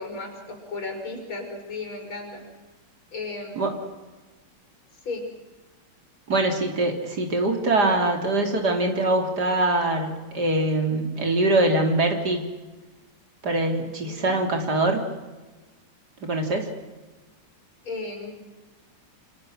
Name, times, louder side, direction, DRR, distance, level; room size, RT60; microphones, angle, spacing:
voice 1, 0.0-2.4 3.1-3.6 5.0-5.3 13.8-14.4 17.8-18.3, left 3 dB, 75° left, 3 dB, 6.2 m, -35 dB
voice 2, 6.3-12.4 13.4-15.0 16.2-16.7, right 2 dB, 50° right, 3 dB, 3.5 m, -23 dB
27.5 x 27.0 x 6.5 m, 1.2 s
omnidirectional pair, 2.3 m